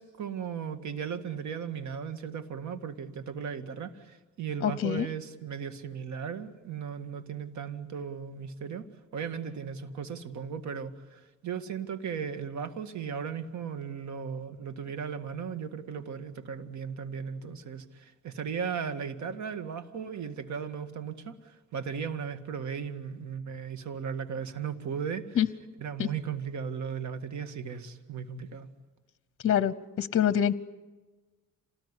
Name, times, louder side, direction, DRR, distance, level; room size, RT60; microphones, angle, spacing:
voice 1, 0.0-8.9 9.1-25.4 25.8-28.7, right 7 dB, 70° right, 10 dB, 2.1 m, -36 dB
voice 2, 4.6-5.1 25.4-25.5 26.0-26.1 29.4-30.5, left 9 dB, 45° left, 17 dB, 0.9 m, -25 dB
27.0 x 19.0 x 9.9 m, 1.2 s
cardioid pair, 90°, 30 cm